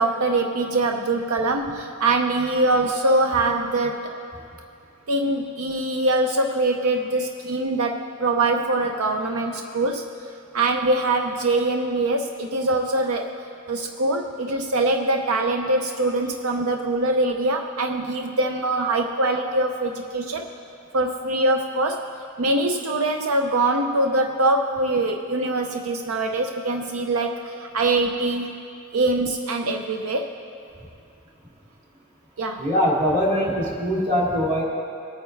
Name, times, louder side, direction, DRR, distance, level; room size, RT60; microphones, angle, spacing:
voice 1, 0.0-4.1 5.1-10.1 10.5-13.3 13.7-20.5 20.9-22.1 22.4-28.6 28.9-30.3 32.4-32.7, right 2 dB, 85° right, 4 dB, 0.6 m, -23 dB
voice 2, 32.6-34.6, equal, 35° right, -4 dB, 2.6 m, -22 dB
21.5 x 9.1 x 3.2 m, 2.5 s
head